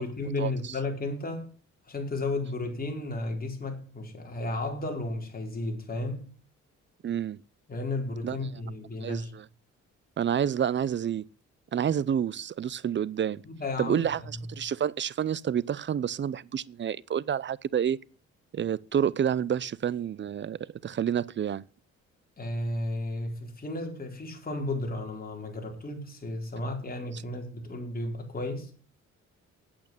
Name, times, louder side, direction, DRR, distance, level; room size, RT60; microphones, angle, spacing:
voice 1, 0.0-1.5 1.9-6.3 7.7-9.3 13.4-14.0 22.4-28.7, left 2 dB, 30° left, 4.3 m, -33 dB
voice 2, 7.0-7.4 8.2-8.4 9.0-9.4 10.2-11.2 11.7-13.4 13.8-14.2 14.5-18.0 18.5-21.6, right 8 dB, 40° right, 0.6 m, -29 dB
8.7 x 8.6 x 8.4 m
cardioid pair, 90°, 30 cm